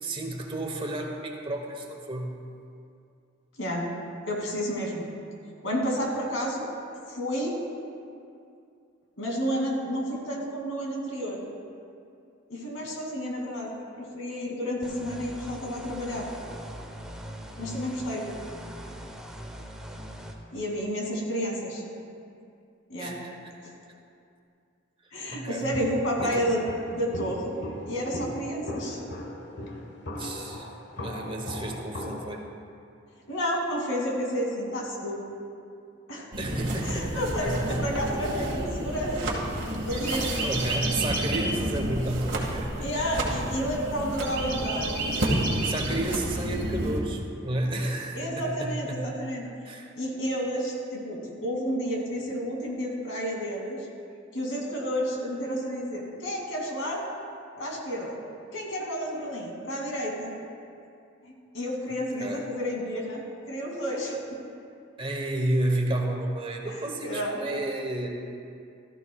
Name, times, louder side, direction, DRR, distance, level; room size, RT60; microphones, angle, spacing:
voice 1, 0.0-2.3 23.0-23.3 25.3-25.8 26.2-26.4 30.2-30.7 31.0-32.4 36.4-37.8 40.4-42.9 45.5-49.1 49.6-49.9 62.2-62.4 65.0-68.1, right 1 dB, 25° right, 2 dB, 1.1 m, -31 dB
voice 2, 4.3-5.1 5.6-6.7 7.1-7.6 9.2-11.4 12.5-16.3 17.6-18.3 20.5-21.8 22.9-23.2 23.6-23.7 25.1-26.6 26.9-27.6 27.9-29.0 33.3-35.2 36.1-36.3 36.8-39.3 39.8-40.3 42.8-45.0 48.1-49.5 49.9-53.8 54.3-57.0 57.6-58.2 58.5-60.3 61.2-64.2 66.6-67.4, equal, 80° left, -1 dB, 2.7 m, -31 dB
sound 1, 14.8-20.3, equal, 5° right, 0.9 m, -41 dB
Walk footsteps, 25.7-32.4, left 1 dB, 60° left, 1.2 m, -38 dB
sound 2, 36.3-47.0, right 1 dB, 60° right, 2.0 m, -30 dB
16.0 x 13.5 x 2.4 m, 2.5 s
head